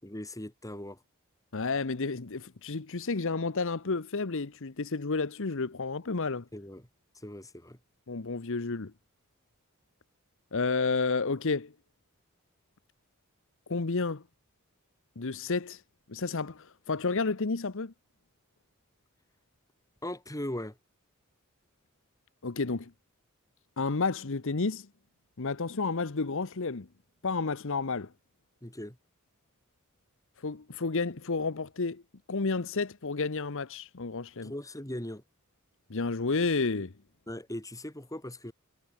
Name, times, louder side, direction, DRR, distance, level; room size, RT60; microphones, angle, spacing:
voice 1, 0.0-1.0 6.5-6.8 7.2-7.8 20.0-20.8 28.6-29.0 34.4-35.2 37.3-38.5, left 1 dB, 15° left, 4.6 m, -39 dB
voice 2, 1.5-6.5 8.1-8.9 10.5-11.7 13.7-14.2 15.2-15.8 16.1-17.9 22.4-22.9 23.8-24.9 25.4-26.9 27.2-28.1 30.4-32.0 32.3-34.5 35.9-36.9, left 4 dB, 65° left, 1.0 m, -31 dB
head